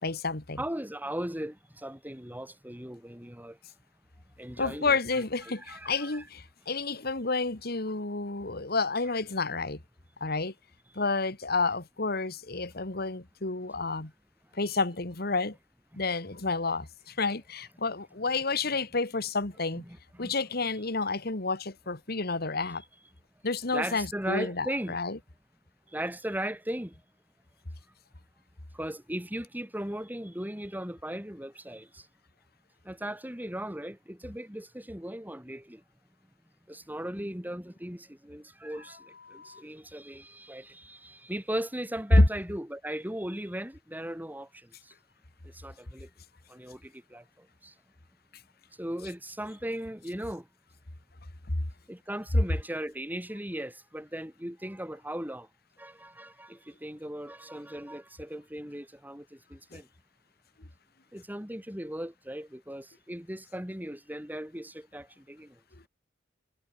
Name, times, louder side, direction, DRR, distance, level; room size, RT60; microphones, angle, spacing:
voice 1, 0.0-0.6 4.6-9.8 10.2-10.5 11.0-14.1 14.6-15.6 15.9-19.8 20.2-22.8 23.4-25.2 39.3-39.6 59.7-59.8, left 3 dB, 55° left, 2.1 m, -30 dB
voice 2, 0.6-3.6 4.4-6.2 14.6-14.7 15.9-16.0 19.7-20.3 23.7-25.0 25.9-26.9 28.7-32.0 32.9-35.8 36.7-39.0 39.3-44.5 45.6-46.1 46.5-47.7 48.8-50.4 51.9-55.5 55.8-59.9 61.1-65.5, right 1 dB, 10° right, 5.8 m, -38 dB
head